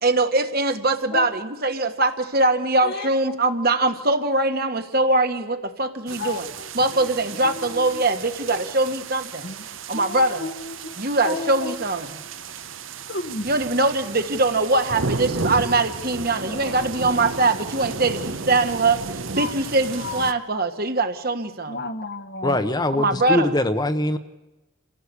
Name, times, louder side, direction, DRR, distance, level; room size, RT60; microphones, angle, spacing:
voice 1, 0.0-6.5 6.7-9.5 9.9-10.5 11.0-12.2 13.4-19.0 19.3-21.8 23.0-23.5, right 2 dB, 45° right, 8 dB, 1.5 m, -22 dB
sound 1, 6.1-20.3, right 4 dB, 70° right, 1.1 m, -33 dB
voice 2, 6.2-6.7 7.0-8.0 9.4-9.6 9.9-10.9 11.2-11.8 13.1-13.4 16.4-16.9 19.4-19.5 20.0-20.3 21.7-22.6, left 3 dB, 50° left, 10 dB, 1.3 m, -32 dB
voice 3, 22.4-24.2, left 1 dB, 20° left, 9 dB, 0.9 m, -22 dB
26.5 x 16.0 x 8.3 m, 1.1 s
head